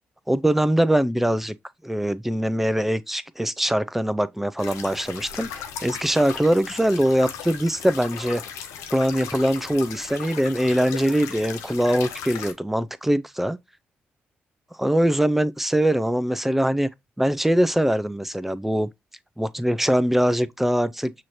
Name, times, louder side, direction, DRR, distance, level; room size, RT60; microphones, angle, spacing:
voice 1, 0.3-1.6 1.8-8.4 8.9-13.6 14.8-16.9 17.2-18.9 19.4-21.1, equal, 5° right, 0.5 m, -22 dB
sound 1, 4.6-12.5, left 8 dB, 85° left, 0.6 m, -37 dB
6.2 x 3.0 x 2.7 m
supercardioid pair, 55°, 5 cm